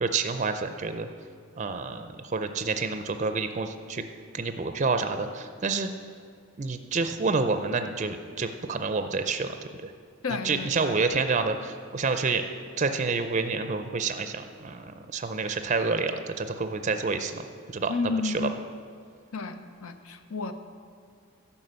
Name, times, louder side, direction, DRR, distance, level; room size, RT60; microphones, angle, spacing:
voice 1, 0.0-1.1 1.6-4.0 4.3-5.9 6.6-9.5 9.8-9.9 10.3-12.4 12.8-17.4 17.7-17.9 18.2-18.5, right 4 dB, 35° right, 8 dB, 0.5 m, -28 dB
voice 2, 10.2-11.0 17.9-18.5 19.3-20.5, left 4 dB, 75° left, 8 dB, 0.7 m, -31 dB
11.0 x 5.7 x 7.9 m, 2.4 s
head